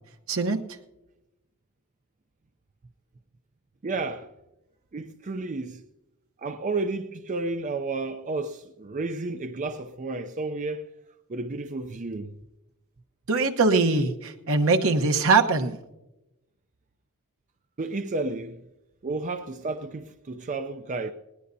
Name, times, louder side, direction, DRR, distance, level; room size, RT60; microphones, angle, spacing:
voice 1, 0.3-0.6 13.3-15.8, right 3 dB, 70° right, 1.1 m, -22 dB
voice 2, 3.8-4.3 4.9-5.8 6.4-10.9 11.3-12.4 17.8-18.6 19.0-21.1, right 3 dB, 35° right, 0.5 m, -32 dB
20.5 x 18.5 x 2.7 m
head